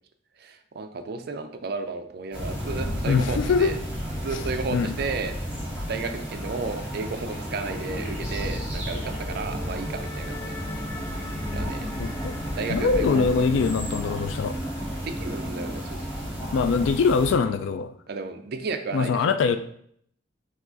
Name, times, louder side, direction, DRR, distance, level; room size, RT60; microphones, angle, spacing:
voice 1, 0.4-3.8 4.2-5.4 5.9-10.6 11.5-11.9 12.5-13.2 15.0-16.0 18.1-19.6, right 4 dB, 55° right, 8 dB, 0.4 m, -33 dB
sound 1, 2.3-17.3, equal, 5° right, 1.7 m, -32 dB
voice 2, 3.1-3.7 4.3-4.4 4.7-4.9 12.0-12.4 12.7-14.6 16.5-17.9 18.9-19.6, left 5 dB, 80° left, 9 dB, 0.3 m, -23 dB
sound 2, 5.7-17.6, equal, 15° left, 0.5 m, -40 dB
4.7 x 2.4 x 3.9 m, 0.66 s
head